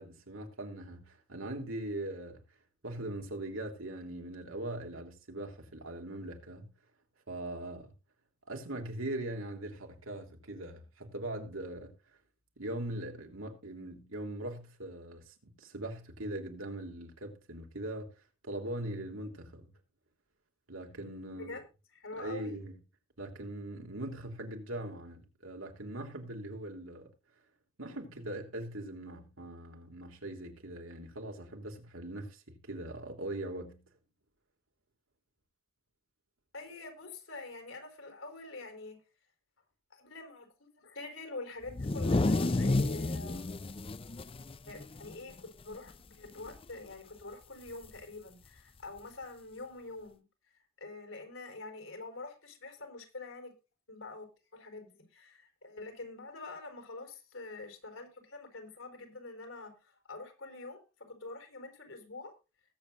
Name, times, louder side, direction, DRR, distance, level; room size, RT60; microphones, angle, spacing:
voice 1, 0.0-2.4 2.8-6.7 7.3-7.9 8.5-11.9 12.6-18.1 18.4-19.7 20.7-21.6 22.2-22.7 23.2-27.1 27.8-33.8, right 1 dB, 80° right, 3.2 m, -41 dB
voice 2, 21.3-21.6 21.9-22.7 36.5-39.0 39.9-43.6 44.7-50.2 50.8-53.5 53.9-62.3, left 3 dB, 70° left, 4.8 m, -46 dB
sound 1, 41.7-45.4 45.7-45.9 46.3-46.7 47.8-47.9 49.0-49.1, left 2 dB, 25° left, 0.5 m, -31 dB
20.5 x 8.2 x 2.6 m
head